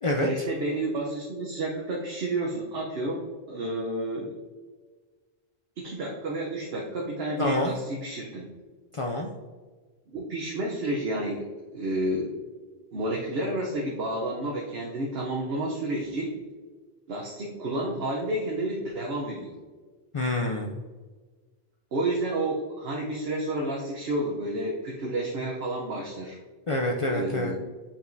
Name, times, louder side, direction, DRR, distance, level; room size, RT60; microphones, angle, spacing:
voice 1, 0.2-3.2 3.5-4.3 5.8-8.5 10.1-12.3 12.9-16.3 17.1-19.5 21.9-26.4 27.1-27.6, right 1 dB, 75° right, -2 dB, 1.0 m, -30 dB
voice 2, 7.4-7.7 8.9-9.3 20.1-20.8 26.7-27.5, left 1 dB, 50° left, 1 dB, 0.4 m, -27 dB
7.1 x 5.1 x 2.6 m, 1.4 s
omnidirectional pair, 1.1 m